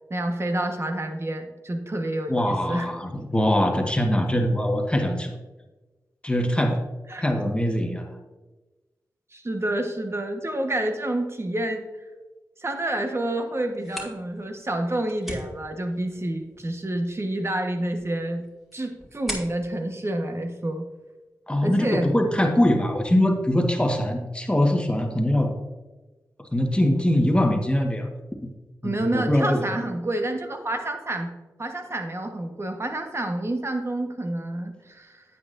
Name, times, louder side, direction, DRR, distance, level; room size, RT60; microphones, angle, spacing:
voice 1, 0.1-2.9 7.1-7.2 9.3-11.9 12.6-18.4 18.7-20.9 21.6-22.1 28.8-31.3 31.6-35.2, right 1 dB, 35° right, 5 dB, 1.2 m, -28 dB
voice 2, 2.3-5.4 6.2-6.8 7.2-8.1 21.5-25.5 26.5-28.1 28.4-28.5 28.8-29.7, left 1 dB, 15° left, 3 dB, 1.4 m, -22 dB
sound 1, 13.6-21.2, equal, ahead, 2.4 m, -42 dB
9.3 x 8.3 x 2.6 m, 1.2 s
cardioid pair, 40°, 7 cm